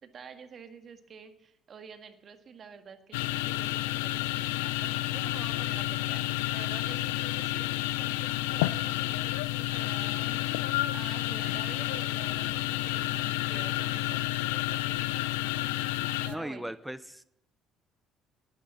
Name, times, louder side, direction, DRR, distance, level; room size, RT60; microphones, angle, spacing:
voice 1, 0.0-7.7 8.0-14.9 16.2-16.7, right 6 dB, 50° right, 8 dB, 1.8 m, -48 dB
sound 1, 3.1-16.4, left 16 dB, 85° left, 0.5 m, -30 dB
voice 2, 16.3-17.2, right 1 dB, 5° right, 15 dB, 0.9 m, -37 dB
10.5 x 10.0 x 8.4 m, 0.81 s
hypercardioid pair, 65°, 0 cm